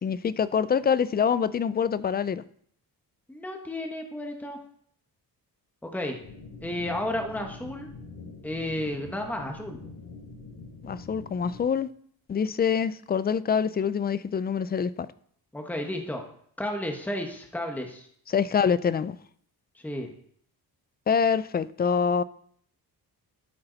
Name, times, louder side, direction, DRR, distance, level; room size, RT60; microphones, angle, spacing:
voice 1, 0.0-2.4 10.8-11.9 12.3-15.1 18.3-19.2 21.1-22.2, left 7 dB, 25° left, 0.3 m, -25 dB
voice 2, 3.3-4.6 5.8-6.2 6.6-7.9 8.4-9.8 15.5-16.2 16.6-18.1 19.7-20.1, left 1 dB, 5° left, 1.3 m, -32 dB
sound 1, 6.2-11.7, left 3 dB, 60° left, 6.0 m, -44 dB
12.0 x 9.7 x 4.0 m
wide cardioid pair, 155°, 37 cm